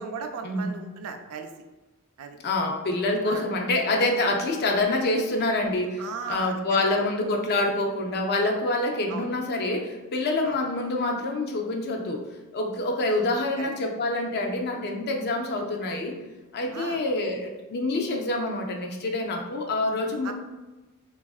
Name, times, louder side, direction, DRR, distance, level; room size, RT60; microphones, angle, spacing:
voice 1, 0.0-1.5 2.2-2.4 3.2-3.5 6.0-6.9 9.1-9.3 10.4-10.6 13.1-13.2 13.6-13.7 16.7-17.0 20.2-20.3, right 6 dB, 85° right, 6 dB, 0.4 m, -37 dB
voice 2, 2.4-12.2 12.5-16.1 16.5-20.3, left 2 dB, 50° left, 2 dB, 0.4 m, -26 dB
3.4 x 2.4 x 2.3 m, 1.1 s
head